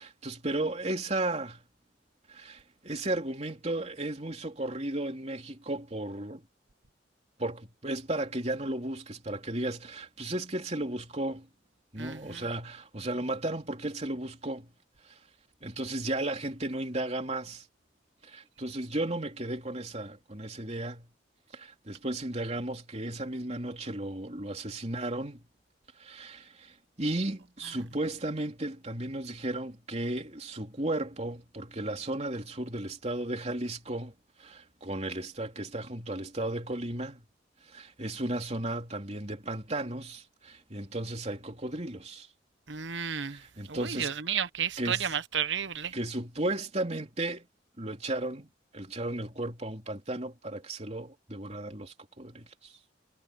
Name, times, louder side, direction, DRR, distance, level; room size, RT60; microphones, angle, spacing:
voice 1, 0.0-1.6 2.3-6.4 7.4-11.5 11.9-14.7 15.0-15.2 15.6-17.7 18.2-21.1 21.5-25.4 26.0-34.1 34.4-37.2 37.6-42.3 43.2-44.2 44.8-45.2 45.9-47.5 47.8-52.7, right 1 dB, 35° right, 3.3 m, -34 dB
voice 2, 12.0-12.4 42.7-43.4 43.7-45.9, right 8 dB, 75° right, 1.1 m, -32 dB
head